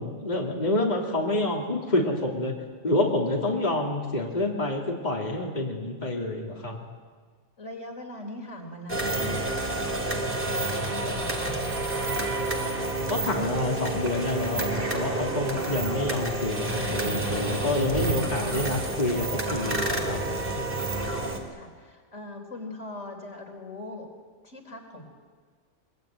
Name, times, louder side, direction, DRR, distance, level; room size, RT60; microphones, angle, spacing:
voice 1, 0.0-2.5 2.8-6.8 13.1-20.2, left 2 dB, 35° left, -1 dB, 3.2 m, -28 dB
voice 2, 7.6-12.0 21.5-24.1 24.4-25.0, left 1 dB, 80° left, 3 dB, 4.4 m, -41 dB
sound 1, 8.9-21.4, right 2 dB, 45° right, 3.4 m, -29 dB
23.5 x 23.0 x 9.1 m, 1.6 s
omnidirectional pair, 1.2 m